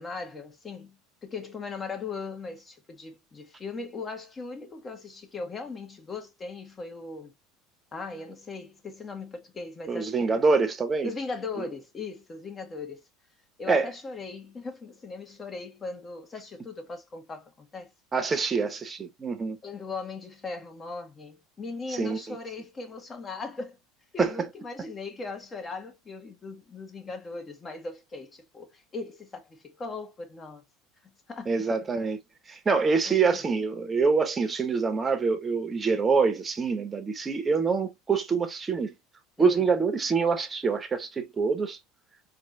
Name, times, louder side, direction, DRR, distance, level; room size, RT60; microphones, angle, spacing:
voice 1, 0.0-7.3 7.9-10.4 11.0-13.0 13.6-17.9 19.6-23.8 24.1-30.6 31.0-31.8 33.1-33.4 39.4-39.6, left 4 dB, 25° left, 1.3 m, -39 dB
voice 2, 9.9-11.1 11.6-11.7 13.7-13.9 18.1-19.6 22.0-22.4 24.2-24.3 31.5-32.2 32.5-38.9 39.4-41.8, right 4 dB, 25° right, 1.0 m, -25 dB
4.2 x 3.2 x 2.6 m
supercardioid pair, 100°, 0 cm